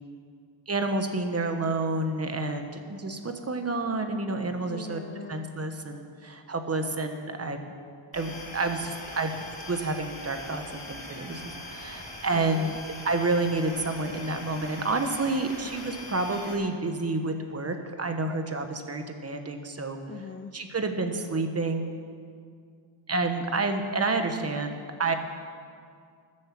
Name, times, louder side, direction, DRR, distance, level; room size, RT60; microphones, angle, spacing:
voice 1, 0.7-5.0 5.3-7.6 8.1-9.3 9.7-12.8 13.0-20.0 20.5-21.9 23.1-25.1, right 3 dB, 30° right, 6 dB, 1.1 m, -29 dB
voice 2, 4.7-5.5 12.3-12.8 20.1-20.5, left 6 dB, 25° left, 7 dB, 0.4 m, -41 dB
sound 1, 8.1-16.5, left 2 dB, 45° left, 4.3 m, -42 dB
19.5 x 7.6 x 7.5 m, 2.2 s
wide cardioid pair, 160°, 50 cm